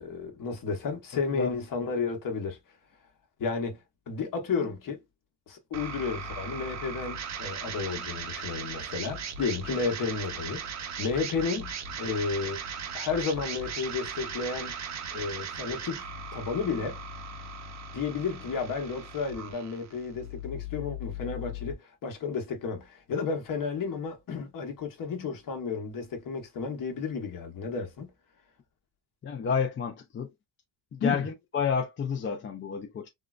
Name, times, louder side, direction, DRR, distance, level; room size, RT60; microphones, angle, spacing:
voice 1, 0.0-2.6 3.4-3.8 4.1-5.0 5.5-10.7 11.0-12.6 12.9-14.7 15.1-17.0 17.9-28.1 31.0-31.3, left 5 dB, 50° left, 1.0 m, -32 dB
sound 1, 5.7-21.7, right 4 dB, 40° right, 0.6 m, -38 dB
voice 2, 29.2-30.3 30.9-33.1, left 6 dB, 30° left, 0.5 m, -30 dB
3.7 x 2.1 x 2.4 m
cardioid pair, 135°, 44 cm